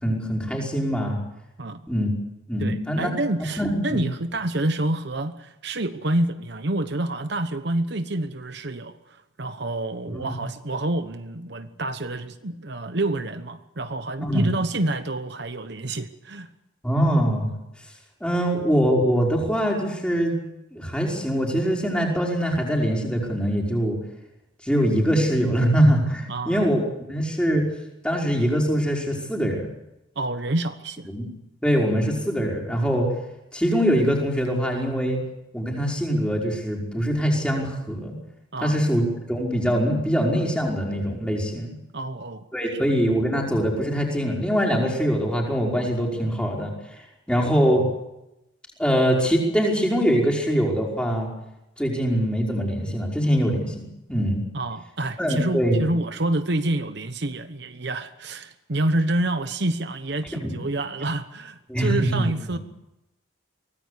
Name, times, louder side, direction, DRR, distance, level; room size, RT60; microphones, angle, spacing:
voice 1, 0.0-1.2 1.9-2.1 2.5-3.1 3.6-4.0 10.1-10.4 14.2-14.5 16.8-17.5 18.2-20.4 20.7-24.0 24.6-26.8 27.1-27.7 28.0-29.7 31.1-31.3 31.6-33.1 33.5-35.2 35.5-38.1 38.6-41.7 42.5-47.8 48.8-51.3 51.8-54.4 55.2-55.9 60.3-60.5 61.7-62.6, equal, 5° left, -1 dB, 5.3 m, -23 dB
voice 2, 2.6-16.5 26.3-26.7 30.2-31.1 38.5-38.8 41.9-42.4 42.7-43.0 54.5-62.6, right 1 dB, 55° right, 9 dB, 1.1 m, -28 dB
24.5 x 18.5 x 8.4 m, 0.92 s
head